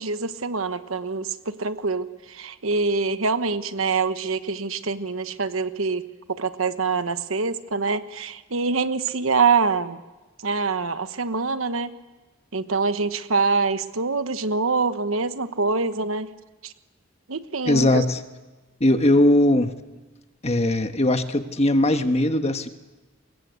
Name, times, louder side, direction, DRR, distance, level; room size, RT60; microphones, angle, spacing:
voice 1, 0.0-10.0 10.4-11.9 12.5-16.3 16.6-16.7 17.3-18.1, right 4 dB, 75° right, 11 dB, 1.2 m, -25 dB
voice 2, 17.6-18.2 18.8-19.7 20.4-22.7, left 1 dB, 30° left, 8 dB, 1.4 m, -19 dB
24.0 x 22.0 x 8.3 m, 1.2 s
head